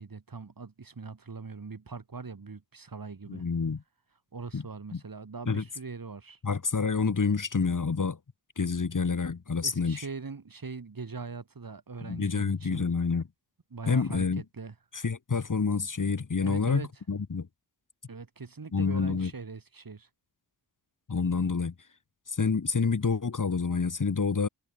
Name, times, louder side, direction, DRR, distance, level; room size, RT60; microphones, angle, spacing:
voice 1, 0.0-3.4 4.3-6.4 9.6-12.9 13.7-14.7 16.4-16.9 18.1-20.1, right 4 dB, 50° right, 5.8 m, -41 dB
voice 2, 3.3-3.8 4.5-4.6 4.9-5.0 5.5-5.6 6.4-8.2 8.6-10.1 12.0-13.2 13.9-14.4 14.9-17.5 18.7-19.3 21.1-21.7 22.3-24.5, left 5 dB, 45° left, 2.4 m, -28 dB
cardioid pair, 50°, 44 cm